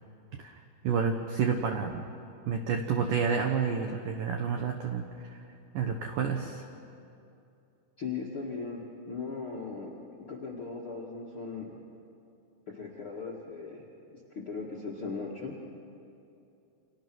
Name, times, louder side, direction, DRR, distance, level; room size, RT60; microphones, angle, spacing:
voice 1, 0.3-2.0 2.5-6.7, right 6 dB, 80° right, 5 dB, 2.0 m, -30 dB
voice 2, 8.0-9.9 10.3-11.8 12.7-13.8 14.1-15.6, left 4 dB, 60° left, -3 dB, 1.4 m, -38 dB
29.5 x 27.0 x 6.2 m, 2.7 s
omnidirectional pair, 5.6 m